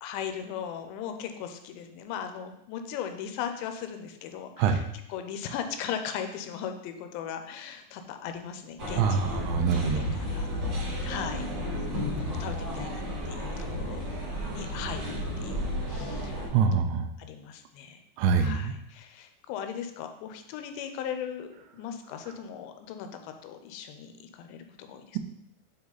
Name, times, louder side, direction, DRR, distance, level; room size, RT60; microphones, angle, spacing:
voice 1, 0.0-4.8 5.1-9.4 10.0-10.5 11.0-11.5 12.3-13.6 13.9-14.1 14.5-15.6 15.9-16.4 16.7-16.9 17.2-18.0 18.4-21.5 21.7-25.0, left 8 dB, 85° left, 7 dB, 2.8 m, -38 dB
sound 1, 8.8-16.5, left 1 dB, 45° right, 1.4 m, -33 dB
voice 2, 9.0-10.1 16.5-17.1 18.2-18.7, right 6 dB, 85° right, 6 dB, 2.8 m, -25 dB
9.6 x 4.1 x 3.9 m, 0.77 s
omnidirectional pair, 5.3 m